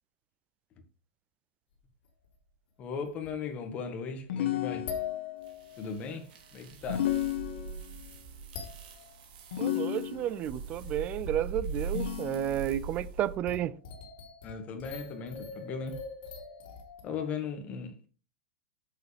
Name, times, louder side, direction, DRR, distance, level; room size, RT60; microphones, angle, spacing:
sound 1, 2.2-2.3 2.9-3.8 4.9-6.3 7.6-7.7 8.1-8.2 8.5-9.2 11.2-11.3 12.2-12.3 13.5-17.0, left 7 dB, 55° left, 3.4 m, -42 dB
voice 1, 2.8-4.9 5.8-7.1 14.4-16.0 17.0-18.0, left 5 dB, 25° left, 1.6 m, -37 dB
sound 2, 4.3-5.4 6.9-8.1 9.5-10.6 11.9-12.9, left 12 dB, 75° left, 1.4 m, -33 dB
sound 3, 5.5-13.4, right 4 dB, 55° right, 2.8 m, -41 dB
voice 2, 9.6-13.7, right 12 dB, 25° right, 0.4 m, -32 dB
9.3 x 7.4 x 3.4 m
supercardioid pair, 170°, 6 cm